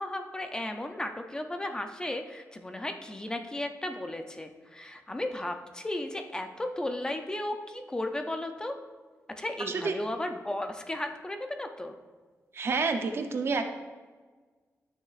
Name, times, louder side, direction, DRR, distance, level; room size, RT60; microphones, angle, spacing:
voice 1, 0.0-8.8 9.4-12.0, left 1 dB, 15° left, 5 dB, 0.4 m, -35 dB
voice 2, 12.5-13.6, right 4 dB, 50° right, 6 dB, 0.6 m, -29 dB
12.0 x 6.4 x 2.4 m, 1.4 s
wide cardioid pair, 175°, 5 cm